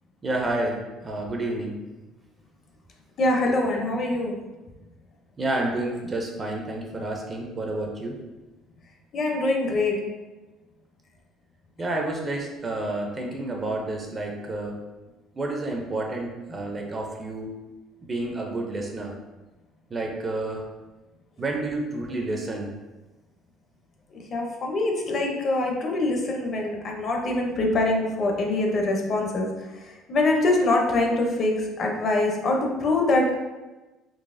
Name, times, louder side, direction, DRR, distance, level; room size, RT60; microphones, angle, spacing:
voice 1, 0.2-1.8 5.4-8.2 11.8-14.8 15.3-17.5 18.0-19.1 19.9-20.6 21.4-22.7, right 2 dB, 20° right, 1 dB, 0.4 m, -30 dB
voice 2, 3.2-4.4 9.1-10.0 24.1-33.4, left 2 dB, 35° left, 1 dB, 0.5 m, -24 dB
3.8 x 3.0 x 2.5 m, 1.1 s
cardioid pair, 165°, 0 cm